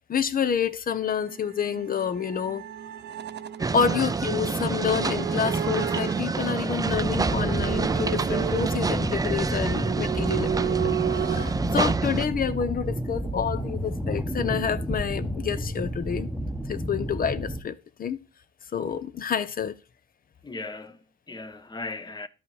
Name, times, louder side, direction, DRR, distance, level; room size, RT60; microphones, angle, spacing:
voice 1, 0.1-2.6 3.7-16.3 16.7-18.2 18.7-19.7, left 7 dB, 45° left, 1.0 m, -28 dB
sound 1, 0.9-11.5, right 10 dB, 60° right, 0.9 m, -34 dB
sound 2, 3.6-12.3, right 4 dB, 20° right, 0.5 m, -28 dB
sound 3, 6.8-17.6, equal, ahead, 1.2 m, -31 dB
voice 2, 20.4-22.3, left 3 dB, 20° left, 1.1 m, -37 dB
12.5 x 5.6 x 4.9 m
cardioid pair, 90°, 20 cm